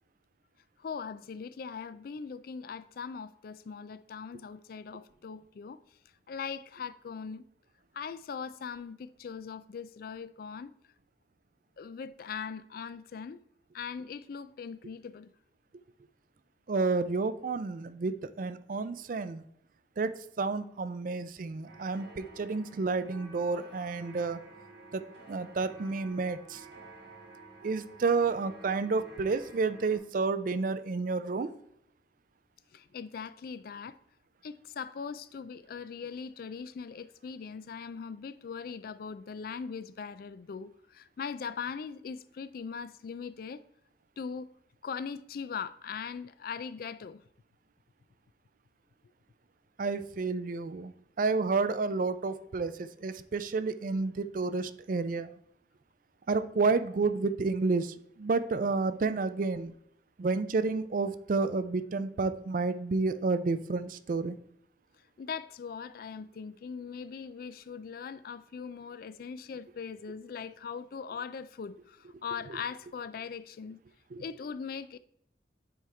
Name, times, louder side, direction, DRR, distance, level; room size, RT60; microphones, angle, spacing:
voice 1, 0.8-5.8 6.3-7.4 7.9-10.7 11.8-13.4 13.7-15.3 32.7-34.0 34.4-43.6 44.2-44.5 44.8-47.2 65.2-73.8 74.2-75.0, left 6 dB, 50° left, 0.3 m, -40 dB
voice 2, 16.7-19.4 20.0-24.4 24.9-25.0 25.3-26.6 27.6-31.5 49.8-55.4 56.3-59.7 60.2-64.4 74.1-74.2, right 4 dB, 45° right, 0.4 m, -30 dB
sound 1, 21.7-30.0, right 2 dB, 75° right, 1.7 m, -52 dB
9.4 x 3.5 x 4.2 m
head